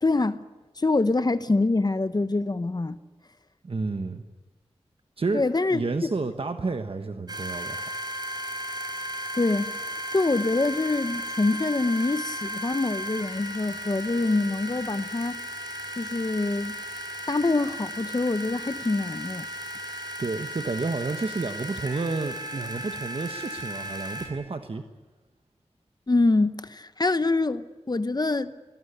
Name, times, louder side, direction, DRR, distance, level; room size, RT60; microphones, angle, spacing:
voice 1, 0.0-0.4 0.8-3.0 5.3-6.1 9.3-15.4 16.0-16.8 17.3-19.5 26.1-28.6, left 3 dB, 40° left, 0.9 m, -25 dB
voice 2, 3.6-4.2 5.2-5.4 5.7-7.9 20.2-24.8, right 3 dB, 60° right, 1.3 m, -30 dB
sound 1, 7.3-24.3, equal, 40° right, 5.3 m, -35 dB
23.5 x 18.5 x 9.9 m
cardioid pair, 50°, 11 cm